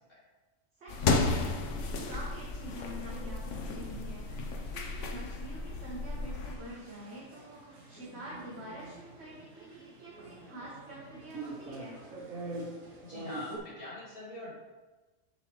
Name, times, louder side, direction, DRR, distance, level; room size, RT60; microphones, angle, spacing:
voice 1, 0.8-1.4 1.7-4.3 4.7-12.0, equal, 55° right, -6 dB, 1.5 m, -46 dB
sound 1, 0.9-6.6, left 3 dB, 70° left, 1.1 m, -33 dB
sound 2, 3.0-13.6, right 2 dB, 85° right, 1.5 m, -46 dB
voice 2, 13.0-14.5, left 2 dB, 45° left, -6 dB, 2.5 m, -43 dB
7.1 x 6.8 x 3.1 m, 1.2 s
omnidirectional pair, 1.3 m